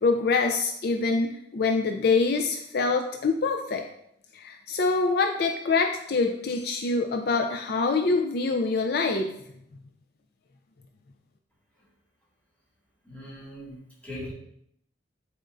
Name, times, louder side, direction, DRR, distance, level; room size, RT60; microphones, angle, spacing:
voice 1, 0.0-3.8 4.3-9.3, left 4 dB, 55° left, 4 dB, 0.4 m, -25 dB
voice 2, 13.0-14.3, left 1 dB, 10° left, -8 dB, 2.1 m, -40 dB
8.8 x 4.3 x 2.5 m, 0.74 s
head